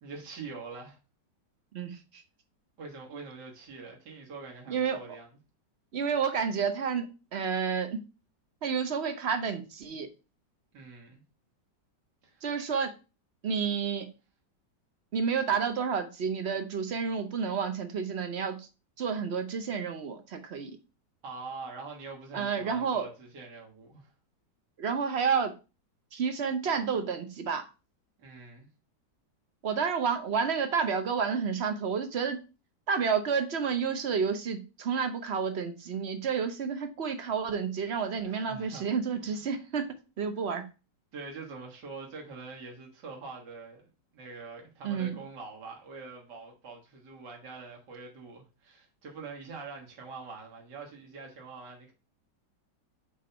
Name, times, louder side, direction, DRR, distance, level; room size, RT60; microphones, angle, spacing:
voice 1, 0.0-1.0 2.8-5.3 10.7-11.2 12.2-12.4 21.2-24.1 28.2-28.7 38.2-38.9 39.2-39.4 41.1-43.8 44.1-51.9, right 4 dB, 70° right, 2.0 m, -44 dB
voice 2, 4.7-5.0 5.9-8.0 8.6-10.1 12.4-12.9 13.4-14.1 15.1-18.7 19.0-20.8 22.3-23.1 24.8-25.5 26.1-27.7 29.6-32.4 32.9-40.7 44.8-45.1, right 6 dB, 50° right, 0.8 m, -30 dB
4.7 x 4.2 x 5.5 m
omnidirectional pair, 1.9 m